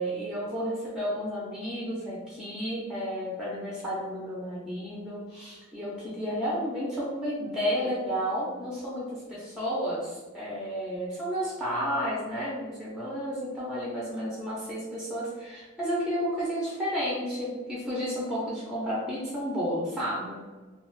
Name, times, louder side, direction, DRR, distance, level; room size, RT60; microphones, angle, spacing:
voice 1, 0.0-20.4, equal, 5° right, -7 dB, 0.7 m, -32 dB
2.4 x 2.3 x 3.2 m, 1.2 s
head